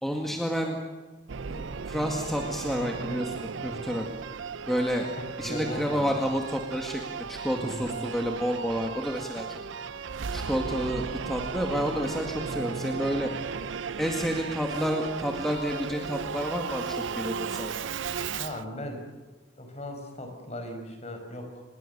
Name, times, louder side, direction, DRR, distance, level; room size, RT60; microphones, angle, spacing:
voice 1, 0.0-0.8 1.5-4.1 4.7-5.1 5.4-9.5 10.3-13.3 14.0-17.7, equal, ahead, 1 dB, 1.9 m, -30 dB
Singing / Musical instrument, 1.3-18.6, right 5 dB, 75° right, 0.6 m, -35 dB
voice 2, 5.4-6.1 7.6-8.0 18.4-19.0 19.6-21.6, equal, 35° left, 5 dB, 5.2 m, -37 dB
26.0 x 21.5 x 6.7 m, 1.3 s
head